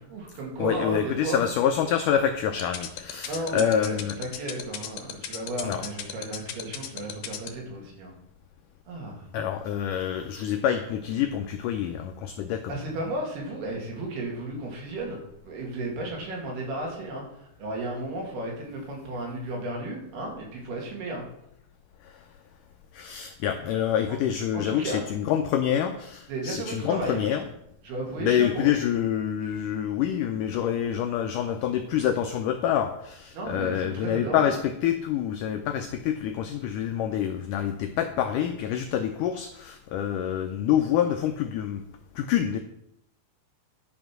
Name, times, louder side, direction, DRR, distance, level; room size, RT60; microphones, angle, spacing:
voice 1, 0.0-1.4 3.3-8.1 8.9-9.3 12.7-15.2 15.4-21.3 24.5-25.0 26.3-27.2 27.8-28.7 33.3-34.5, right 2 dB, 80° right, -1 dB, 4.3 m, -34 dB
voice 2, 0.6-4.2 5.6-5.8 9.3-12.8 22.0-22.1 22.9-27.4 28.2-41.8 42.2-42.6, left 9 dB, 85° left, 6 dB, 1.8 m, -27 dB
sound 1, 2.6-7.5, left 11 dB, 70° left, 2.2 m, -34 dB
11.0 x 5.3 x 6.0 m, 0.78 s
omnidirectional pair, 4.5 m